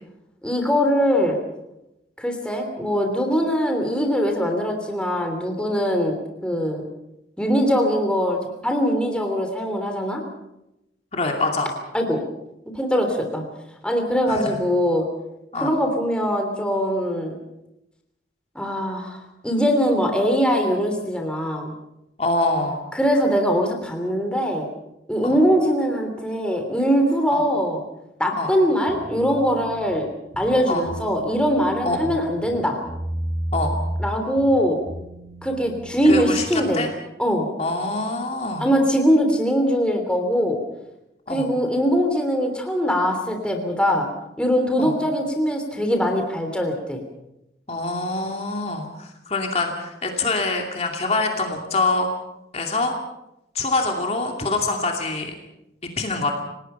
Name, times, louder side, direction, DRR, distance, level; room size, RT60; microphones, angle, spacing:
voice 1, 0.4-1.4 2.2-6.8 7.4-10.2 11.9-12.2 12.7-13.4 13.8-15.0 15.6-17.3 18.5-19.2 19.4-21.7 22.9-24.7 25.1-27.8 28.2-30.1 30.4-32.8 34.0-34.8 35.4-36.9 37.2-37.5 38.6-40.6 41.3-44.1 44.4-47.0, equal, 5° left, 3 dB, 3.1 m, -22 dB
voice 2, 11.1-11.7 14.3-14.6 15.5-15.7 22.2-22.8 25.2-25.4 27.3-27.4 28.4-28.5 30.7-30.9 31.8-32.2 33.5-33.8 36.0-36.9 37.6-38.7 41.3-41.5 44.8-44.9 47.7-52.1 52.5-52.9 53.5-55.3 56.0-56.3, left 2 dB, 35° left, 2 dB, 2.6 m, -25 dB
sound 1, 28.9-29.9 30.3-32.1 32.4-34.1 34.4-36.7, right 1 dB, 65° right, 8.0 m, -33 dB
29.5 x 18.5 x 5.7 m, 0.88 s
head